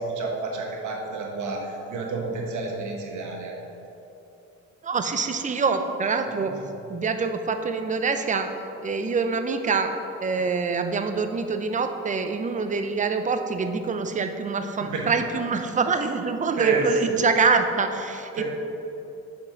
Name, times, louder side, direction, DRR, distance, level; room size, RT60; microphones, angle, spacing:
voice 1, 0.0-3.5 6.4-6.5 14.8-15.1 16.6-17.0 18.3-18.4, right 4 dB, 75° right, 0 dB, 1.1 m, -29 dB
voice 2, 4.8-6.5 6.9-8.5 8.8-9.9 10.2-18.4, right 4 dB, 25° right, 7 dB, 0.5 m, -25 dB
5.3 x 4.5 x 4.9 m, 2.9 s
cardioid pair, 90°, 30 cm